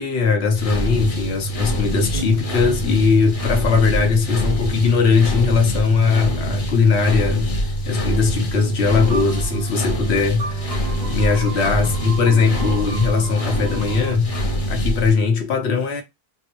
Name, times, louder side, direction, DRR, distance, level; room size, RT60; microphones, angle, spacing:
voice 1, 0.0-14.3 14.7-16.0, left 5 dB, 85° left, 1.1 m, -19 dB
sound 1, 0.5-15.1, equal, 40° left, 0.7 m, -25 dB
sound 2, 2.1-2.6 3.0-3.2 4.0-4.3 5.1-5.4 6.2-7.1 8.5-9.0, right 5 dB, 55° right, 1.8 m, -38 dB
sound 3, 9.0-14.2, right 5 dB, 70° right, 0.8 m, -34 dB
3.7 x 2.0 x 3.0 m
omnidirectional pair, 1.1 m